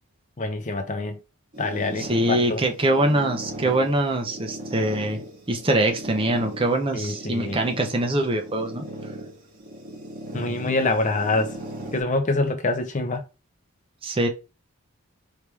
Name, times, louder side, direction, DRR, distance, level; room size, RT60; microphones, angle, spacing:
voice 1, 0.4-1.2 1.6-2.6 6.9-7.6 10.3-11.5 11.9-13.2, left 2 dB, 35° left, 0.6 m, -25 dB
sound 1, 1.5-12.0, right 1 dB, 40° right, 1.8 m, -38 dB
voice 2, 2.0-5.2 5.5-8.8 14.0-14.3, right 1 dB, 25° right, 0.8 m, -23 dB
4.6 x 3.2 x 3.4 m
head